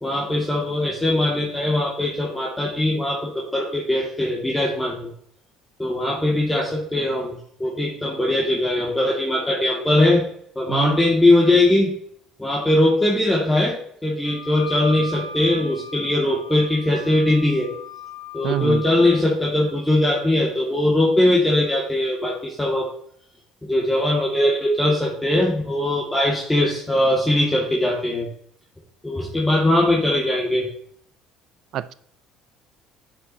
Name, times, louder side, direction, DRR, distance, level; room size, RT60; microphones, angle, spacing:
voice 1, 0.0-5.1 5.8-7.3 7.6-10.2 10.6-11.9 12.4-17.7 18.3-22.9 23.6-28.3 29.0-30.7, left 1 dB, 10° left, 1.9 m, -20 dB
Wind instrument woodwind instrument, 14.2-19.2, left 2 dB, 80° left, 1.4 m, -37 dB
voice 2, 18.4-18.8 31.7-31.9, right 11 dB, 60° right, 0.4 m, -25 dB
9.5 x 6.0 x 2.7 m
supercardioid pair, 75°, 0 cm